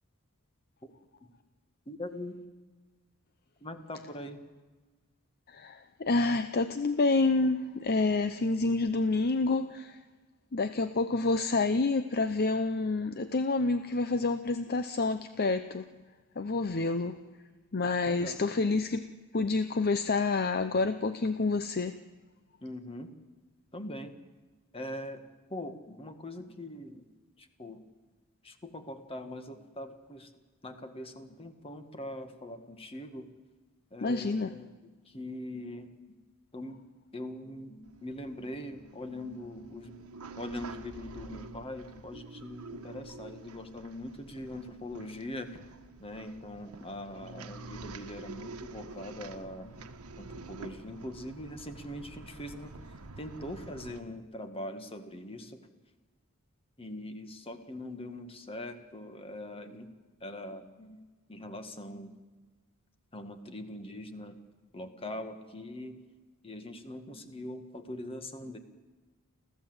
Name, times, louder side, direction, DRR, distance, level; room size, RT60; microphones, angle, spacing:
voice 1, 1.9-2.4 3.6-4.4 18.1-18.4 22.6-23.1 23.7-24.1 24.7-25.2 25.5-27.8 28.4-30.3 30.6-33.3 33.9-35.9 36.5-36.8 37.1-40.1 40.4-45.6 46.0-49.8 50.2-55.6 56.8-59.9 60.2-61.0 61.3-62.2 63.1-64.4 64.7-66.0 66.4-68.6, left 1 dB, 25° left, 8 dB, 1.8 m, -42 dB
voice 2, 5.5-10.0 10.5-15.9 16.4-17.2 17.7-19.0 19.3-22.0 34.0-34.5, left 3 dB, 45° left, 11 dB, 0.7 m, -28 dB
sound 1, 37.8-54.0, right 3 dB, 75° right, 1.3 m, -48 dB
29.5 x 14.5 x 8.0 m, 1.3 s
head